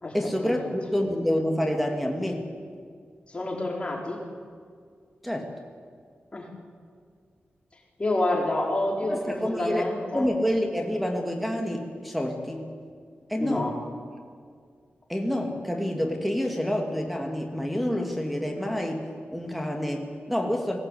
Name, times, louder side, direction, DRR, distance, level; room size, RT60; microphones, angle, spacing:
voice 1, 0.1-2.5 5.2-5.5 9.0-9.9 10.1-12.7 13.3-13.7 15.1-19.1 19.3-20.8, equal, ahead, 1 dB, 2.6 m, -28 dB
voice 2, 3.3-4.2 6.3-6.5 8.0-10.2 13.4-13.7, left 1 dB, 30° left, -2 dB, 4.8 m, -28 dB
21.0 x 17.0 x 8.6 m, 2.1 s
wide cardioid pair, 95°, 4 cm